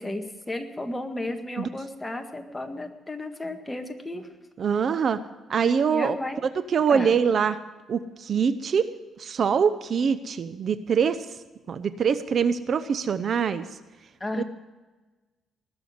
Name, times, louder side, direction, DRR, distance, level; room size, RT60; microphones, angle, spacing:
voice 1, 0.0-4.3 5.9-6.4 6.7-7.1 14.2-14.4, left 2 dB, 15° left, 5 dB, 1.8 m, -33 dB
voice 2, 4.6-5.2 5.5-6.2 6.5-7.6 7.9-8.9 9.2-11.3 11.7-13.7 14.3-14.4, right 6 dB, 55° right, 13 dB, 0.7 m, -24 dB
20.0 x 7.0 x 9.4 m, 1.2 s
cardioid pair, 90°, 0 cm